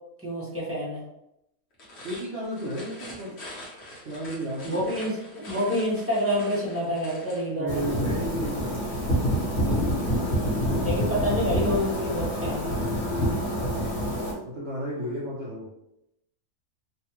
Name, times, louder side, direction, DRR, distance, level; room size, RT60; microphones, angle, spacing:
voice 1, 0.2-1.0 4.7-7.8 10.8-12.7, left 1 dB, 15° right, -6 dB, 0.5 m, -27 dB
sound 1, 1.7-7.5, left 1 dB, 50° left, 1.1 m, -44 dB
voice 2, 2.0-3.4 4.0-4.8 7.6-9.0 13.2-13.9 14.4-15.7, right 1 dB, 55° right, -6 dB, 0.8 m, -33 dB
sound 2, 7.7-14.3, equal, 65° left, 1.4 m, -27 dB
3.2 x 2.3 x 2.9 m, 0.83 s
omnidirectional pair, 1.6 m